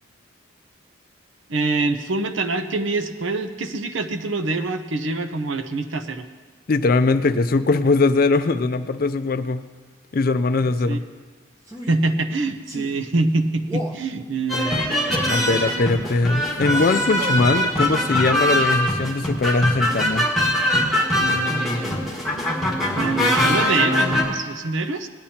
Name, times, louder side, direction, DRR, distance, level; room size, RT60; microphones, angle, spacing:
voice 1, 1.5-6.2 10.6-11.0 11.9-14.8 21.2-22.1 22.9-25.1, right 3 dB, 75° right, 9 dB, 0.7 m, -25 dB
voice 2, 6.7-9.6 10.1-11.0 15.3-20.3, left 3 dB, 45° left, 10 dB, 0.4 m, -20 dB
Male speech man speaking, 11.6-12.0 12.7-13.0 13.6-14.0 15.0-15.4 16.7-17.5, left 2 dB, 15° right, 1.0 m, -34 dB
sound 1, 14.5-24.2, left 1 dB, ahead, 1.6 m, -22 dB
18.0 x 10.5 x 2.9 m, 1.4 s
head